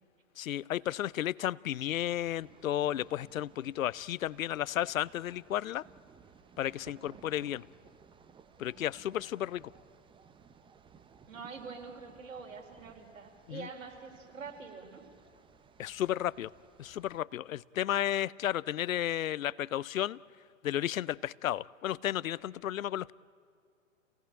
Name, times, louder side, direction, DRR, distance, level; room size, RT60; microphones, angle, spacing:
voice 1, 0.4-5.8 6.6-7.7 8.6-9.6 13.5-13.7 15.8-16.5 16.8-20.2 20.6-23.1, left 12 dB, 80° left, 23 dB, 0.6 m, -33 dB
sound 1, 1.9-17.2, right 6 dB, 10° right, 0.8 m, -59 dB
voice 2, 11.3-15.0, right 5 dB, 75° right, 1 dB, 4.4 m, -45 dB
28.0 x 18.0 x 8.7 m, 2.4 s
hypercardioid pair, 115°, 40 cm